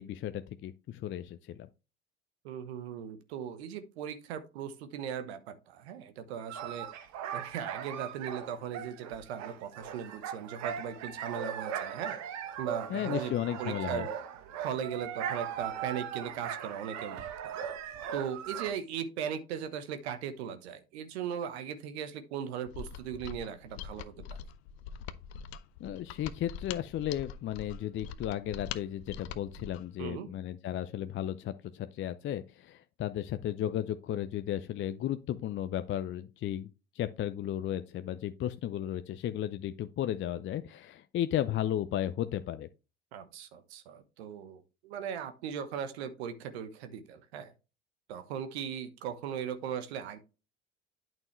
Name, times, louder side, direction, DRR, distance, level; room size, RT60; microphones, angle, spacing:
voice 1, 0.0-1.7 12.9-14.1 25.8-36.7 36.9-42.7, left 11 dB, 35° left, 0.6 m, -34 dB
voice 2, 2.4-6.9 7.3-12.2 12.6-13.3 13.6-14.1 14.6-17.2 17.4-17.5 18.1-24.2 30.0-30.3 43.1-47.5 48.1-50.2, right 8 dB, 70° right, 1.1 m, -38 dB
sound 1, 6.5-18.7, right 8 dB, 55° right, 1.3 m, -39 dB
Mechanisms, 22.7-29.9, left 8 dB, 70° left, 0.8 m, -43 dB
8.8 x 6.0 x 3.2 m
hypercardioid pair, 65°, 33 cm